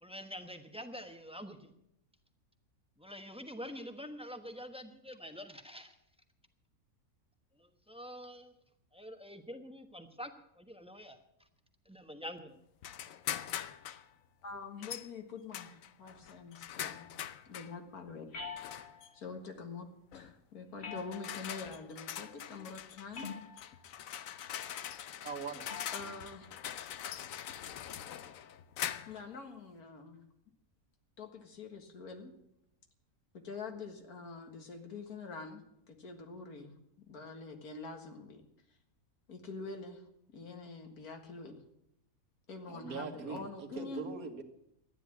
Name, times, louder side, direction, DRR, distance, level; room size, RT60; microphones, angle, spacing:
voice 1, 0.0-1.7 3.0-5.9 7.6-8.5 8.9-11.2 11.9-12.6, equal, 5° right, 7 dB, 0.9 m, -46 dB
sound 1, 12.8-14.0 14.8-15.1 15.5-17.7 18.6-19.1 20.1-20.3 20.9-29.3, left 10 dB, 70° left, 1.1 m, -42 dB
voice 2, 14.4-17.1 17.5-18.3 19.1-19.9 20.1-23.3 25.9-26.5 29.1-30.2 31.2-32.3 33.4-36.8 37.1-38.4 39.3-40.0 40.3-41.6 42.5-44.1, left 4 dB, 85° left, 5 dB, 2.2 m, -45 dB
sound 2, 18.3-19.2 20.8-21.7 23.1-23.8 25.7-26.1, left 5 dB, 45° left, 1.6 m, -45 dB
voice 3, 25.2-26.2 42.7-44.4, right 5 dB, 70° right, 5 dB, 1.9 m, -42 dB
13.0 x 10.0 x 8.4 m, 0.78 s
omnidirectional pair, 1.5 m